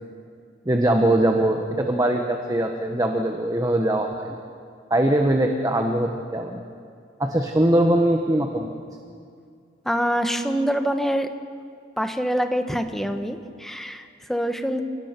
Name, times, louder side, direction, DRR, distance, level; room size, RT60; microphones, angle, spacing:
voice 1, 0.6-4.4 4.9-6.6 7.2-8.7, right 1 dB, 20° right, 3 dB, 1.2 m, -21 dB
voice 2, 9.8-11.3 12.0-14.8, equal, ahead, 6 dB, 1.3 m, -25 dB
29.5 x 18.0 x 6.1 m, 2.3 s
head